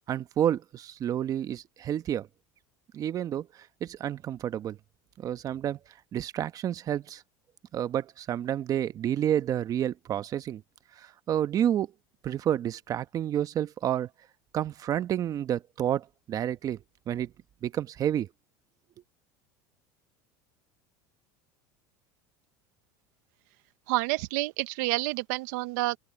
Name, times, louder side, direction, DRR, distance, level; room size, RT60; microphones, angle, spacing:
voice 1, 0.1-2.3 2.9-4.8 5.2-5.8 6.1-7.2 7.7-10.6 11.0-11.9 12.2-14.1 14.5-16.8 17.1-17.3 17.6-18.3, right 10 dB, 35° right, 1.0 m, -29 dB
voice 2, 23.9-26.0, right 21 dB, 75° right, 0.7 m, -29 dB
open air
supercardioid pair, 125°, 10 cm